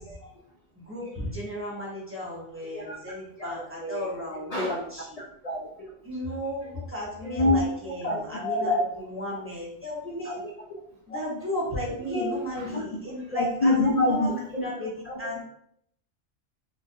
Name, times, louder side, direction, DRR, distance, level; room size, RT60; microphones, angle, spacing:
voice 1, 0.9-5.0 6.0-10.4 11.1-14.9 15.2-15.4, left 1 dB, 10° right, -6 dB, 0.8 m, -34 dB
voice 2, 3.4-4.1 4.5-4.8 5.4-5.9 7.2-7.7 8.0-9.1 10.2-10.5 11.1-11.2 12.1-12.8 13.3-15.2, left 1 dB, 50° left, -3 dB, 0.4 m, -27 dB
4.0 x 2.6 x 2.6 m, 0.70 s
omnidirectional pair, 1.3 m